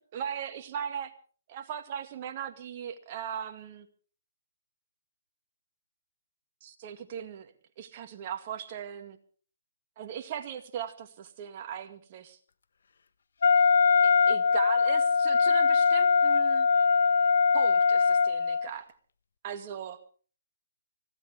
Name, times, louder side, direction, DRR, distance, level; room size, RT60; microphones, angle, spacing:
voice 1, 0.1-1.1 1.5-3.9 6.6-9.2 10.0-12.4 14.0-16.7 17.5-18.9 19.4-20.0, right 8 dB, 40° right, 6 dB, 2.2 m, -38 dB
Wind instrument woodwind instrument, 13.4-18.7, left 5 dB, 65° left, 1.0 m, -22 dB
24.5 x 16.0 x 3.6 m, 0.41 s
hypercardioid pair, 140°, 0 cm